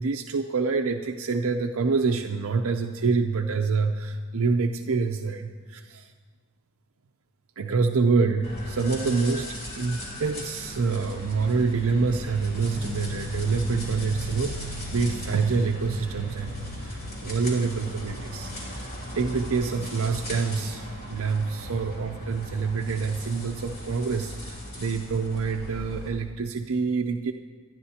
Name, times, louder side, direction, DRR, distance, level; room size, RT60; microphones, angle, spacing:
voice 1, 0.0-6.1 7.6-27.3, right 4 dB, 65° right, 4 dB, 0.6 m, -26 dB
sound 1, 8.4-26.1, equal, 45° left, 3.1 m, -37 dB
27.5 x 10.5 x 2.9 m, 1.5 s
head